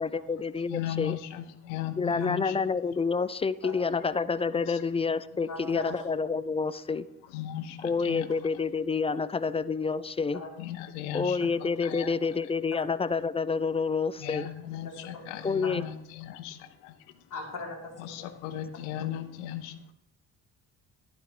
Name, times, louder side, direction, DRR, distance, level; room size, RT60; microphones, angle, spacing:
voice 1, 0.0-1.2 2.0-7.1 7.8-10.4 11.1-14.5 15.4-15.8, left 5 dB, 15° left, 16 dB, 0.3 m, -28 dB
voice 2, 0.7-2.6 5.8-5.9 7.3-8.3 10.6-12.1 14.2-16.9 18.0-19.9, left 12 dB, 70° left, 11 dB, 1.0 m, -37 dB
voice 3, 5.5-6.1 10.3-10.5 12.7-12.8 14.8-15.7 17.3-18.6, left 3 dB, 45° left, -1 dB, 3.6 m, -40 dB
12.0 x 11.0 x 3.3 m, 0.81 s
figure-of-eight pair, 45°, 45 cm